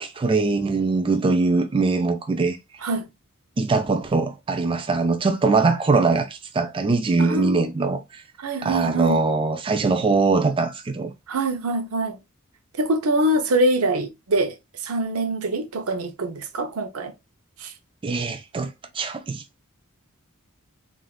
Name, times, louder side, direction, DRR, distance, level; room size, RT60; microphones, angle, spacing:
voice 1, 0.0-2.6 3.6-8.2 8.6-11.1 18.0-19.4, right 3 dB, 25° right, 0.3 m, -22 dB
voice 2, 7.2-7.7 8.4-9.2 11.3-12.2 12.8-14.6 14.8-17.1 17.6-17.7, right 1 dB, 85° right, 0.6 m, -24 dB
3.5 x 2.5 x 2.3 m
head